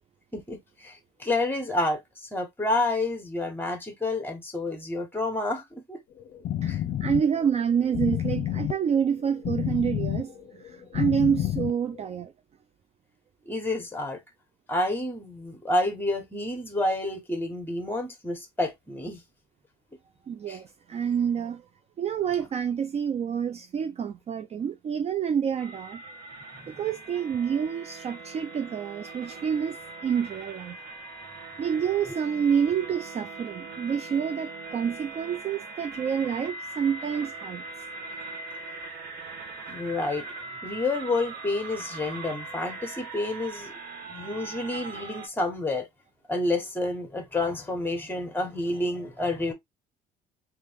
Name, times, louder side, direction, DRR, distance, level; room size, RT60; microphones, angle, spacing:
voice 1, 0.3-6.0 6.7-6.8 13.5-14.2 14.7-19.2 20.5-20.6 26.7-26.8 39.7-40.3 40.6-43.7 44.1-45.9 46.3-49.5, left 2 dB, 10° left, 1.5 m, -29 dB
sound 1, 6.1-12.1, left 11 dB, 60° left, 0.7 m, -30 dB
voice 2, 7.0-10.4 10.6-12.3 20.3-21.7 22.0-26.0 26.7-30.8 31.6-37.6, right 7 dB, 40° right, 0.4 m, -28 dB
sound 2, 25.6-45.3, right 2 dB, 75° right, 1.2 m, -41 dB
3.4 x 2.9 x 3.5 m
cardioid pair, 110°, 17 cm